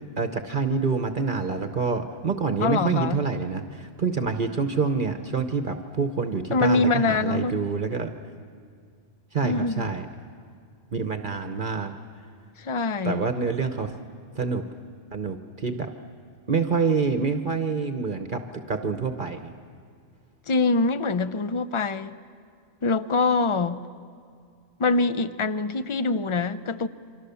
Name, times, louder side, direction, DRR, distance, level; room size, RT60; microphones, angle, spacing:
voice 1, 0.2-8.1 9.3-10.0 10.9-11.9 13.0-13.9 14.4-14.6 15.1-15.9 16.5-18.4 18.7-19.5, right 5 dB, 45° right, 1.1 m, -27 dB
voice 2, 2.6-3.2 6.5-7.5 9.4-9.9 12.6-13.3 20.5-22.1 22.8-23.8 24.8-26.9, left 3 dB, 35° left, 0.6 m, -24 dB
28.0 x 24.5 x 7.0 m
omnidirectional pair, 1.3 m